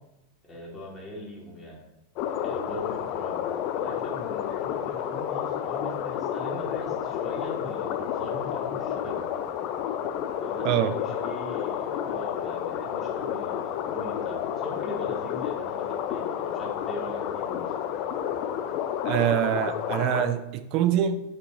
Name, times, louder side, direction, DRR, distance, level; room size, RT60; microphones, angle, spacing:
voice 1, 0.4-1.8 2.4-3.4 3.7-9.3 10.4-17.7, left 1 dB, 20° left, -3 dB, 1.3 m, -40 dB
sound 1, 2.2-20.3, left 9 dB, 40° left, 0.4 m, -30 dB
voice 2, 10.6-11.0 19.0-21.2, right 10 dB, 40° right, 9 dB, 0.4 m, -24 dB
5.0 x 2.9 x 3.6 m, 0.93 s
figure-of-eight pair, 90°, 0 cm